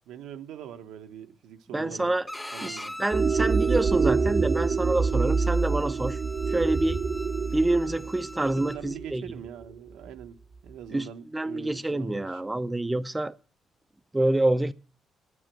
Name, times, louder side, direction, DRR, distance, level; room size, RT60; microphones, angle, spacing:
voice 1, 0.1-2.1 2.5-2.9 8.3-12.4, right 9 dB, 90° right, 1.2 m, -42 dB
voice 2, 1.7-2.2 2.6-6.2 6.5-7.0 7.5-9.2 10.9-11.1 11.3-13.3 14.1-14.7, right 2 dB, 15° right, 0.6 m, -27 dB
Bowed string instrument, 2.3-8.8, left 1 dB, 10° left, 1.0 m, -43 dB
sound 1, 3.1-9.6, right 5 dB, 45° right, 0.7 m, -26 dB
9.7 x 9.0 x 9.0 m
cardioid pair, 90°, 0 cm